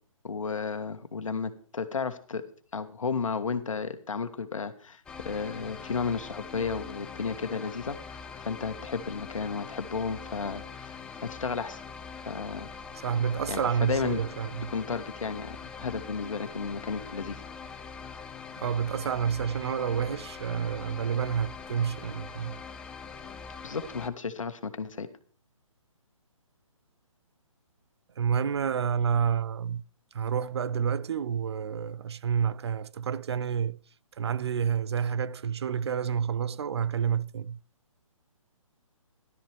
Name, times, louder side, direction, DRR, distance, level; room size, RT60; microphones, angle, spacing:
voice 1, 0.2-2.4 2.7-11.8 12.3-12.7 13.5-14.2 14.7-17.4 23.6-25.1, left 5 dB, 70° left, 1.6 m, -33 dB
sound 1, 5.1-24.1, left 5 dB, 5° left, 0.5 m, -43 dB
voice 2, 13.0-14.7 18.6-22.6 28.2-29.8 30.1-33.8 34.2-37.6, right 7 dB, 50° right, 0.5 m, -29 dB
14.5 x 12.5 x 3.4 m
figure-of-eight pair, 145°, 17 cm